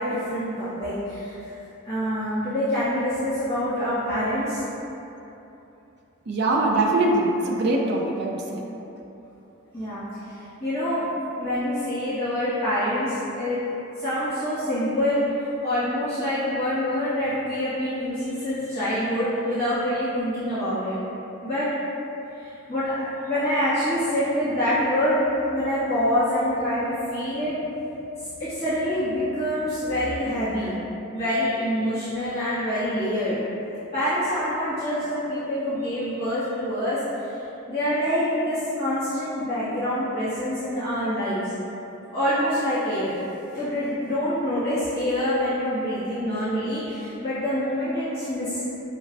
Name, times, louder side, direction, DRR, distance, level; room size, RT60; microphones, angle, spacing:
voice 1, 0.0-1.5 1.8-4.6 9.7-11.0 11.4-13.6 14.0-15.2 15.6-20.9 21.4-21.7 22.4-25.2 25.5-27.6 28.4-30.7 31.1-33.4 33.9-37.0 37.7-41.4 42.1-43.1 43.5-48.6, equal, 25° left, -16 dB, 1.4 m, -26 dB
voice 2, 6.3-8.6, right 2 dB, 50° right, -1 dB, 0.4 m, -22 dB
6.1 x 2.1 x 2.6 m, 3.0 s
head